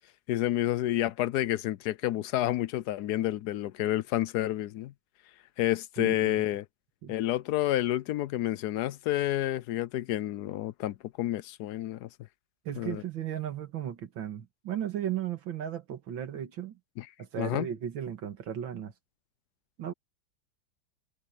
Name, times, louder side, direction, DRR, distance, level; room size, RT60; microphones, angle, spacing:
voice 1, 0.3-4.9 5.6-6.6 7.1-12.1 12.8-13.0 17.0-17.1 17.4-17.7, left 14 dB, 70° left, 1.0 m, -29 dB
voice 2, 6.0-6.4 7.0-7.2 12.7-16.8 17.2-18.9 19.8-19.9, right 10 dB, 85° right, 2.4 m, -35 dB
omnidirectional pair, 2.1 m